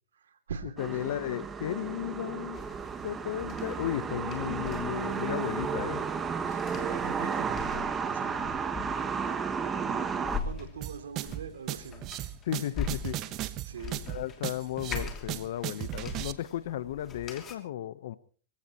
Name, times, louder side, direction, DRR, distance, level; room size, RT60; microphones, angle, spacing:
voice 1, 0.1-1.0 6.5-8.4 9.8-12.1 13.6-14.0, right 6 dB, 85° right, 7 dB, 2.9 m, -43 dB
voice 2, 0.8-2.6 3.0-6.1 12.4-13.2 14.1-18.2, left 12 dB, 70° left, 16 dB, 1.0 m, -34 dB
sound 1, 0.8-10.4, right 6 dB, 20° right, 1.5 m, -33 dB
sound 2, 2.5-17.6, left 6 dB, 25° left, 2.9 m, -43 dB
sound 3, 10.8-16.3, right 15 dB, 40° right, 1.1 m, -36 dB
25.0 x 15.5 x 3.1 m, 0.42 s
hypercardioid pair, 125°, 0 cm